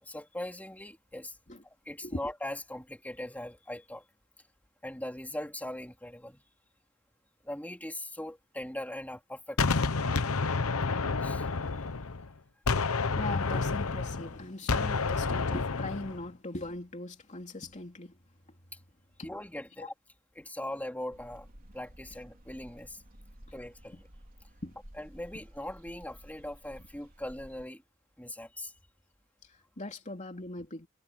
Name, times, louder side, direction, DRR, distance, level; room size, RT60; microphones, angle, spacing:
voice 1, 0.0-1.3 1.6-4.0 4.8-6.4 7.4-9.9 11.2-11.5 18.7-18.8 19.2-19.9 20.3-21.5 21.7-23.0 23.5-24.1 25.0-27.8 28.2-28.7, left 1 dB, 5° left, 3.4 m, -40 dB
Gunshot gunfire, 9.6-12.3 12.7-16.2, left 4 dB, 70° left, 1.0 m, -29 dB
voice 2, 12.7-18.2 19.2-19.3 19.8-19.9 24.6-24.8 29.5-30.9, left 2 dB, 35° left, 3.0 m, -40 dB
sound 1, 21.1-27.7, equal, 40° right, 4.0 m, -53 dB
head